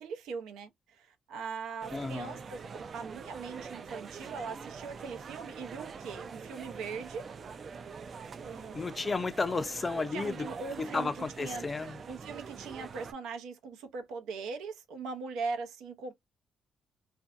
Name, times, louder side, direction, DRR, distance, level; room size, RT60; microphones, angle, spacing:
voice 1, 0.0-7.3 8.4-9.1 10.1-16.1, right 5 dB, 90° right, 0.7 m, -40 dB
sound 1, 1.8-13.1, right 5 dB, 45° right, 0.3 m, -45 dB
voice 2, 1.9-2.4 8.7-10.5 10.8-12.0, left 3 dB, 30° left, 0.4 m, -33 dB
2.6 x 2.2 x 2.4 m
cardioid pair, 90°, 0 cm